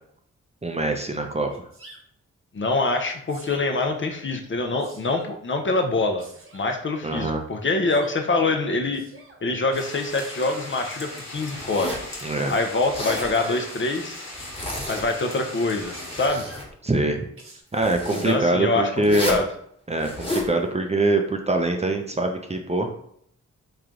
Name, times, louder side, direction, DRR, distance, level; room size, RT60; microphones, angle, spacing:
voice 1, 0.6-1.5 7.0-7.4 12.2-12.5 16.8-17.2 17.7-19.4 19.9-22.9, right 2 dB, 20° right, 3 dB, 0.6 m, -23 dB
Sneeze, 1.5-2.0 3.0-3.7 4.5-5.3 6.2-6.7 7.7-8.2 8.9-9.4 10.1-10.7 12.8-13.7 14.6-15.3 15.9-16.7 17.4-17.6, right 2 dB, 45° right, 1.1 m, -47 dB
voice 2, 2.5-6.2 6.5-9.0 9.4-12.0 12.5-14.3 14.9-16.5 18.2-19.5, left 3 dB, 40° left, 4 dB, 0.6 m, -25 dB
sound 1, 9.7-16.3, left 1 dB, 55° left, 1.2 m, -39 dB
Zipper (clothing), 11.6-12.1 12.8-13.3 14.3-15.2 15.7-16.7 17.8-18.3 19.0-19.5 20.0-20.5, left 1 dB, 15° left, 1.3 m, -31 dB
3.2 x 2.3 x 3.8 m, 0.67 s
supercardioid pair, 40°, 31 cm